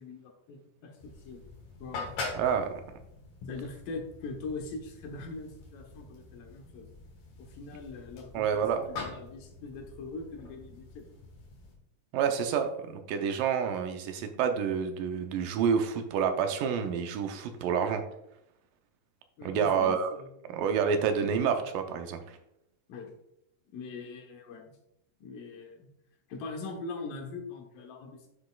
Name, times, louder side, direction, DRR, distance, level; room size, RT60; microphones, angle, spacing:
voice 1, 0.0-1.4 1.8-2.1 3.4-6.9 7.4-11.1 19.4-20.7 22.9-23.1 23.7-24.8 25.2-25.9 26.3-28.3, left 3 dB, 80° left, 2 dB, 2.8 m, -42 dB
sound 1, 1.0-11.8, left 3 dB, 60° left, 2.6 m, -44 dB
voice 2, 2.3-2.7 8.3-8.8 12.1-18.0 19.4-20.1 20.5-22.4, right 7 dB, 80° right, 6 dB, 2.3 m, -28 dB
9.7 x 5.9 x 2.3 m, 0.80 s
omnidirectional pair, 3.9 m